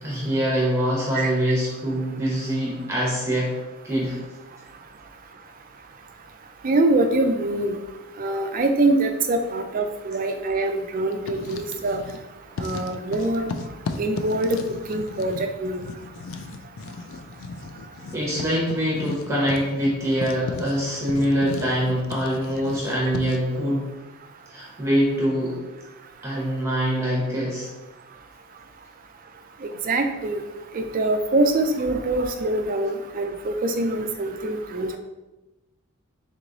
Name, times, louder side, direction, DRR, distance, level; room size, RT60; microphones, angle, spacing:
voice 1, 0.0-3.5 3.8-4.2 18.1-23.9 24.5-25.6 26.2-27.7, equal, 15° right, -5 dB, 1.0 m, -24 dB
voice 2, 6.6-7.8 8.2-12.0 12.6-13.4 14.0-14.6 14.9-15.8 29.9-30.4 30.7-35.0, right 2 dB, 40° right, 6 dB, 0.4 m, -24 dB
Writing, 11.1-12.2 12.5-23.5, left 3 dB, 60° left, 0.3 m, -36 dB
3.6 x 3.1 x 3.9 m, 1.1 s
head